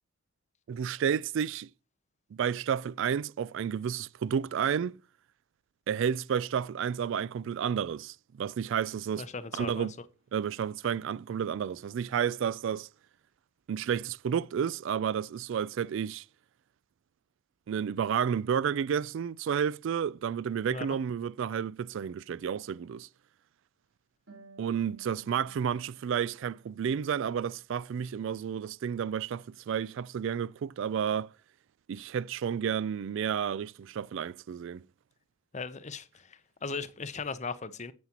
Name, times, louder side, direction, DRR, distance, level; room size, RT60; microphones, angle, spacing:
voice 1, 0.7-1.7 2.3-4.9 5.9-9.2 9.5-9.9 10.3-12.9 13.7-16.2 17.7-23.1 24.6-31.3 31.9-34.8, right 8 dB, 60° right, 0.3 m, -31 dB
voice 2, 9.2-10.0 20.7-21.0 35.5-37.9, left 4 dB, 35° left, 0.7 m, -38 dB
Harp, 24.3-27.7 28.0-29.1, right 3 dB, 75° right, 3.7 m, -58 dB
9.5 x 8.1 x 2.9 m
head